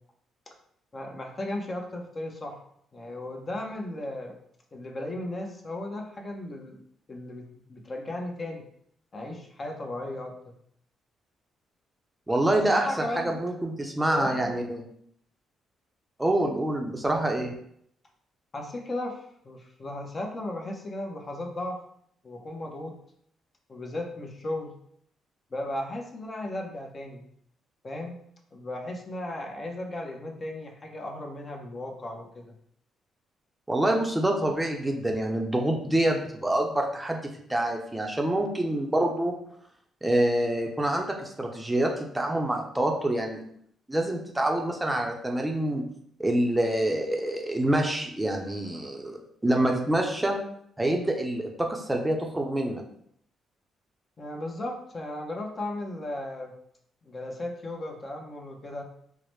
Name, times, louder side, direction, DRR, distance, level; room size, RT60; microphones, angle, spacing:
voice 1, 0.9-2.6 2.9-4.3 4.7-6.8 7.1-8.6 9.1-10.5 12.6-13.4 14.1-14.6 18.5-21.8 22.2-22.9 23.7-24.7 25.5-27.2 27.8-28.1 28.5-32.5 54.2-56.5 57.0-58.8, left 1 dB, 35° left, 2 dB, 0.8 m, -36 dB
voice 2, 12.3-14.8 16.2-17.6 33.7-37.2 37.5-39.3 40.0-43.4 43.9-45.8 46.2-50.4 50.8-52.8, right 1 dB, 10° right, 1 dB, 0.6 m, -26 dB
4.7 x 2.1 x 3.1 m, 0.68 s
cardioid pair, 90°, 0 cm